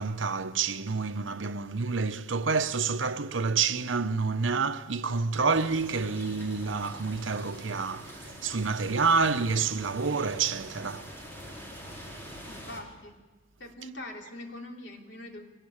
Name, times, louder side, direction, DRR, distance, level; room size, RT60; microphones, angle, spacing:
voice 1, 0.0-11.2, right 4 dB, 85° right, 1.0 m, -28 dB
sound 1, 5.5-12.8, equal, 10° left, 4.4 m, -45 dB
voice 2, 12.5-13.1 13.6-15.5, left 1 dB, 65° left, 3.3 m, -43 dB
22.5 x 18.5 x 8.7 m
head